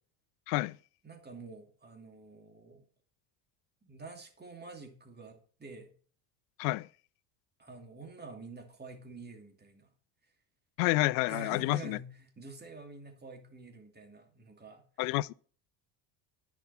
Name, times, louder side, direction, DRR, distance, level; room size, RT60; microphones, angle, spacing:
voice 1, 1.0-2.8 3.8-5.9 7.6-9.9 11.3-14.8, right 3 dB, 20° right, 2.7 m, -48 dB
voice 2, 10.8-12.0 15.0-15.3, left 20 dB, 75° left, 0.5 m, -29 dB
10.5 x 6.1 x 5.6 m
supercardioid pair, 95°, 49 cm